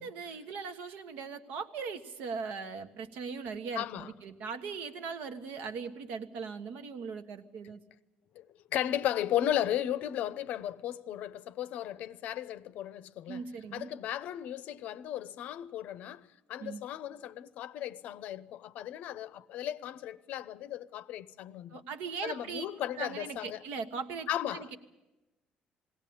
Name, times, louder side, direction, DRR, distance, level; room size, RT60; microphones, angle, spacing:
voice 1, 0.0-7.8 13.3-13.9 16.6-16.8 21.7-22.7 23.0-24.7, right 5 dB, 85° right, 1.4 m, -39 dB
voice 2, 3.7-4.1 7.6-7.7 8.3-8.5 8.7-21.8 22.2-23.6 24.3-24.7, left 11 dB, 60° left, 0.7 m, -35 dB
20.5 x 17.0 x 8.7 m
cardioid pair, 180°, 3 cm